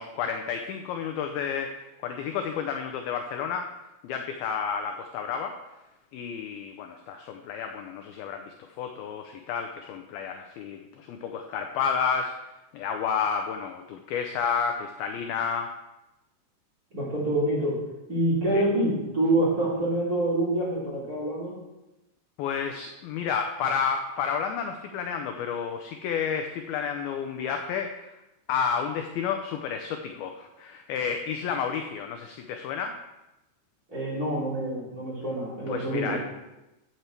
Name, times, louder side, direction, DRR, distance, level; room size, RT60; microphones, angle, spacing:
voice 1, 0.0-3.7 4.0-5.6 6.1-15.7 18.5-18.6 22.4-28.1 28.5-33.0 35.7-36.2, left 6 dB, 85° left, 5 dB, 2.1 m, -31 dB
voice 2, 16.9-17.8 18.1-21.5 33.9-36.2, right 1 dB, 25° right, -6 dB, 2.8 m, -26 dB
11.0 x 8.2 x 4.4 m, 0.98 s
omnidirectional pair, 5.1 m